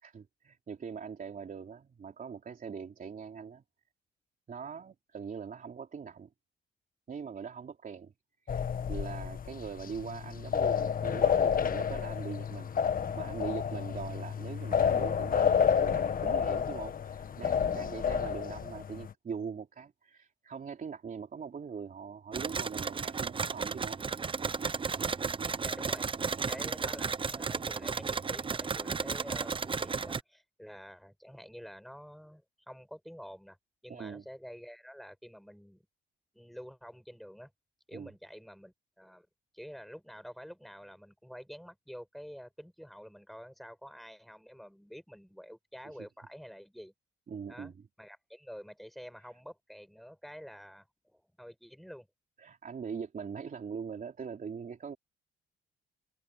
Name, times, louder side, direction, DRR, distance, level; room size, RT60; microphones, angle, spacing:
voice 1, 0.0-3.6 4.5-6.3 7.1-8.1 8.4-8.6 8.9-12.8 13.1-24.0 33.9-34.2 37.9-38.1 46.0-46.1 47.3-47.7 52.4-55.0, right 6 dB, 45° right, 3.5 m, -42 dB
sound 1, 8.5-19.1, left 7 dB, 45° left, 1.4 m, -30 dB
sound 2, 22.3-30.2, right 5 dB, 25° right, 0.7 m, -34 dB
voice 2, 25.6-26.0 26.5-33.6 33.8-35.8 36.3-37.5 37.9-39.3 39.5-46.9 47.5-47.7 48.0-52.1, equal, ahead, 6.8 m, -48 dB
cardioid pair, 90°, 20 cm